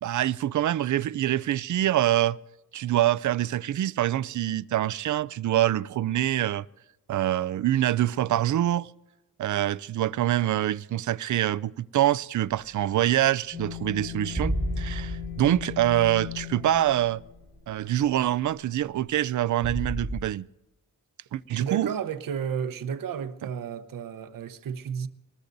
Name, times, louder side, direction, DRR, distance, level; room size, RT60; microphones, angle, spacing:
voice 1, 0.0-2.4 2.7-6.7 7.1-8.9 9.4-17.2 17.7-20.5 21.3-21.9, right 13 dB, 65° right, 0.5 m, -25 dB
sound 1, 13.5-17.7, left 12 dB, 45° left, 4.0 m, -38 dB
sound 2, 14.3-17.1 17.6-17.7 19.6-20.2, right 1 dB, 10° right, 1.4 m, -32 dB
voice 2, 21.5-25.1, right 7 dB, 80° right, 1.0 m, -32 dB
25.0 x 20.0 x 2.7 m
wide cardioid pair, 135°, 33 cm